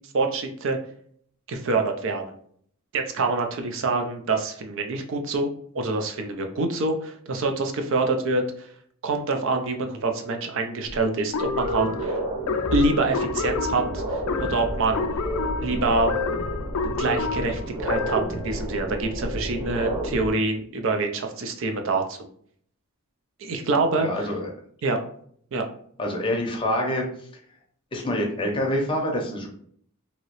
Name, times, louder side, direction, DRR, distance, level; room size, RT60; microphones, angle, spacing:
voice 1, 0.1-0.8 1.5-2.2 2.9-5.5 5.7-8.7 9.0-12.2 12.7-14.0 14.4-15.0 15.6-16.4 16.8-22.3 23.4-24.1 24.8-25.0 25.5-25.6, right 3 dB, 60° right, 5 dB, 0.4 m, -26 dB
sound 1, 10.9-11.0 11.5-20.3, right 1 dB, 35° right, 1.3 m, -31 dB
sound 2, 11.3-18.4, left 4 dB, 75° left, 0.3 m, -29 dB
voice 2, 24.0-24.5 26.0-27.0 27.9-29.5, left 1 dB, 25° left, 1 dB, 0.6 m, -26 dB
2.9 x 2.7 x 2.9 m, 0.62 s
head